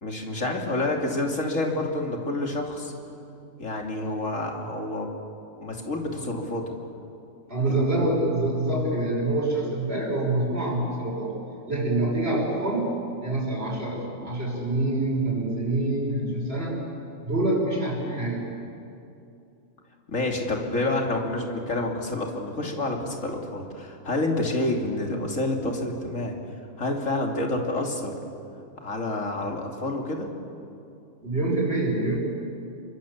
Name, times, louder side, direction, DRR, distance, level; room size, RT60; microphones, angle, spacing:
voice 1, 0.0-2.9 3.6-5.1 5.6-6.7 7.7-7.8 14.2-14.3 20.1-26.3 26.8-28.1 28.8-30.3, left 2 dB, 70° left, 1 dB, 3.2 m, -28 dB
voice 2, 7.5-11.3 11.7-12.9 13.2-16.8 17.2-18.4 31.2-32.2, right 2 dB, 45° right, -2 dB, 6.5 m, -26 dB
29.5 x 24.5 x 7.4 m, 2.6 s
omnidirectional pair, 1.4 m